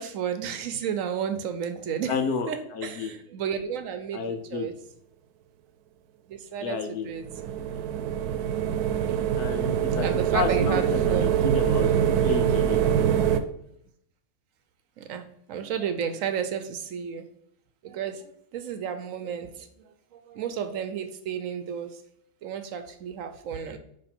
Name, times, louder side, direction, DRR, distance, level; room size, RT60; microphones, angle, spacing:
voice 1, 0.0-2.2 2.5-4.7 6.3-7.2 8.9-9.2 9.5-9.6 10.0-11.3 15.0-15.2 15.5-17.3 17.8-19.7 20.1-22.0 22.4-23.8, right 8 dB, 65° right, 8 dB, 0.9 m, -32 dB
voice 2, 2.1-3.2 4.1-4.7 6.6-7.1 9.4-10.1 10.3-11.9 12.2-12.8, left 5 dB, 85° left, 7 dB, 1.3 m, -31 dB
sound 1, 7.2-13.4, right 9 dB, 90° right, 1.1 m, -24 dB
9.4 x 3.1 x 4.4 m, 0.72 s
omnidirectional pair, 1.6 m